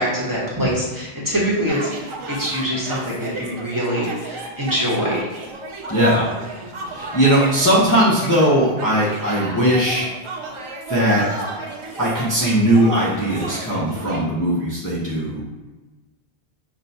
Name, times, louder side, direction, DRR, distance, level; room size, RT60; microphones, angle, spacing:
voice 1, 0.0-1.9 2.3-5.2, equal, 20° right, -7 dB, 1.0 m, -23 dB
sound 1, 1.7-14.3, right 2 dB, 55° right, 0.3 m, -33 dB
voice 2, 5.9-6.3 6.9-10.1 10.9-11.3 12.0-15.4, right 1 dB, 20° left, -8 dB, 0.7 m, -19 dB
6.1 x 2.1 x 2.7 m, 1.2 s
omnidirectional pair, 1.0 m